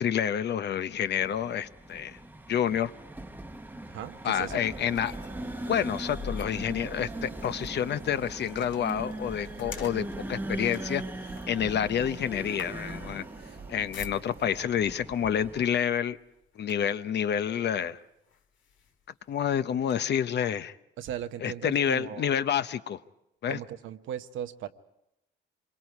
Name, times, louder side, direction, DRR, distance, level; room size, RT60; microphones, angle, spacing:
voice 1, 0.0-2.2 2.5-2.9 4.2-5.1 5.7-11.0 11.5-13.2 13.7-16.2 16.6-18.0 19.3-20.8 21.4-23.0 23.4-23.6, left 9 dB, 60° left, 12 dB, 0.8 m, -28 dB
sound 1, 0.9-15.8, right 1 dB, 10° right, 0.9 m, -40 dB
sound 2, 1.8-14.6 15.5-15.7 16.1-17.1 17.7-17.8 18.3-19.9, left 6 dB, 75° left, 1.8 m, -48 dB
voice 2, 3.9-4.6 21.0-22.4 23.5-24.7, right 10 dB, 80° right, 9 dB, 1.0 m, -38 dB
sound 3, 4.3-14.7, right 6 dB, 60° right, 1.3 m, -49 dB
26.5 x 22.5 x 4.8 m, 0.86 s
cardioid pair, 90°, 20 cm